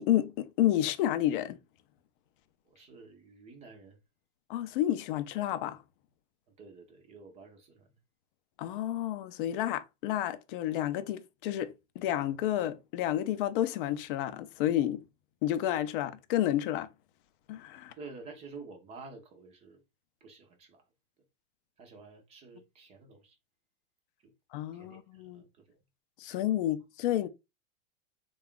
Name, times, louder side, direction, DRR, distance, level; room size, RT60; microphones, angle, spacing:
voice 1, 0.0-1.6 4.5-5.8 8.6-15.0 15.4-16.9 17.5-17.9 24.5-25.4 26.2-27.3, left 12 dB, 45° left, 0.4 m, -30 dB
voice 2, 2.7-4.0 6.5-7.9 18.0-19.8 20.2-20.9 21.8-23.4 24.2-24.3 24.7-25.8 26.2-26.4, right 4 dB, 20° right, 0.5 m, -50 dB
3.4 x 2.3 x 3.6 m
supercardioid pair, 145°, 37 cm